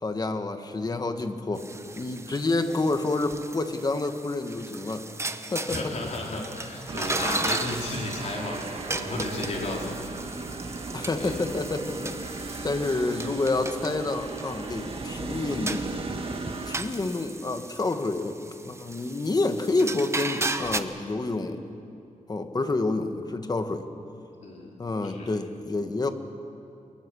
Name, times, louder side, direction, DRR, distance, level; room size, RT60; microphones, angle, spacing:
voice 1, 0.0-1.6 1.9-5.0 5.5-5.8 7.3-7.4 10.9-15.8 16.7-18.4 18.6-21.6 22.3-23.9 24.8-26.1, left 2 dB, 30° left, 7 dB, 1.5 m, -28 dB
sound 1, 1.6-20.8, right 2 dB, 20° right, 0.9 m, -36 dB
voice 2, 5.7-10.0 11.2-11.4 24.4-24.7 25.0-25.3, left 2 dB, 60° left, -2 dB, 4.1 m, -33 dB
sound 2, 6.9-16.8, right 3 dB, 45° right, 1.7 m, -36 dB
24.5 x 22.5 x 6.3 m, 2.5 s
wide cardioid pair, 125°, 13 cm